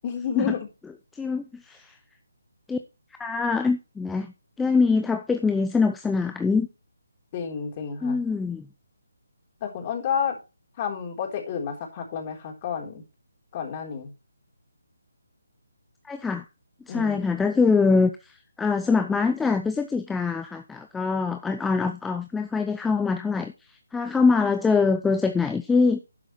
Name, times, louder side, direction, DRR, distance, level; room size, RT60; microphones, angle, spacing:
voice 1, 0.0-0.7 7.3-8.2 9.6-10.4 10.8-13.0 13.5-14.1 16.9-17.2, left 7 dB, 30° left, 1 dB, 3.9 m, -30 dB
voice 2, 1.1-2.0 2.7-2.8 3.2-6.7 8.0-8.7 16.0-16.4 16.9-23.5 23.9-26.0, left 4 dB, 5° left, 7 dB, 0.6 m, -24 dB
12.0 x 9.7 x 3.2 m, 0.28 s
figure-of-eight pair, 150°, 0 cm